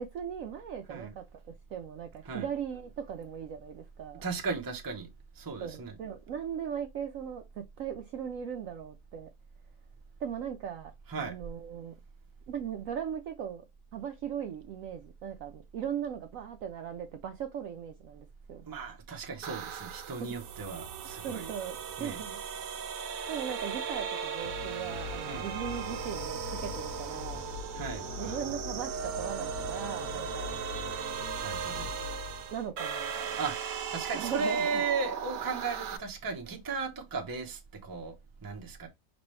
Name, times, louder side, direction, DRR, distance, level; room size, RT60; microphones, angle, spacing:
voice 1, 0.0-4.2 5.6-9.3 10.2-10.9 11.2-11.9 12.5-13.6 13.9-18.7 20.2-20.4 21.2-22.4 23.3-27.4 28.2-30.6 32.5-33.4 34.1-34.8, right 8 dB, 70° right, 0.8 m, -38 dB
voice 2, 4.2-5.1 5.3-5.9 11.1-11.4 18.7-21.5 22.0-22.2 25.3-25.5 27.7-28.4 31.4-31.9 33.4-38.1 38.4-38.9, right 4 dB, 25° right, 0.5 m, -36 dB
sound 1, 19.4-36.0, right 7 dB, 85° right, 1.2 m, -37 dB
sound 2, 24.4-32.7, left 8 dB, 85° left, 1.3 m, -43 dB
5.2 x 3.0 x 3.1 m
omnidirectional pair, 1.8 m